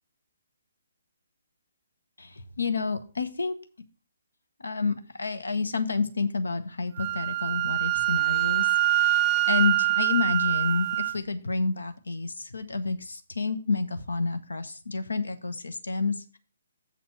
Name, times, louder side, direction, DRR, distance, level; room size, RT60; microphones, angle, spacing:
voice 1, 2.2-3.5 4.6-16.4, left 4 dB, 70° left, 9 dB, 1.0 m, -29 dB
Wind instrument woodwind instrument, 7.0-11.1, right 15 dB, 25° right, 0.3 m, -24 dB
7.7 x 4.1 x 6.9 m, 0.39 s
figure-of-eight pair, 135°, 0 cm